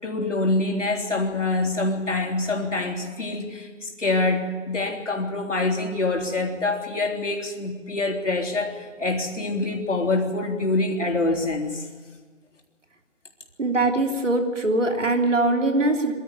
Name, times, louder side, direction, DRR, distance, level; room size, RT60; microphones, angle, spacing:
voice 1, 0.0-11.9, left 2 dB, 65° left, 2 dB, 3.7 m, -25 dB
voice 2, 13.6-16.1, right 2 dB, 70° right, 3 dB, 3.3 m, -22 dB
24.0 x 13.0 x 9.9 m, 1.5 s
figure-of-eight pair, 180°, 39 cm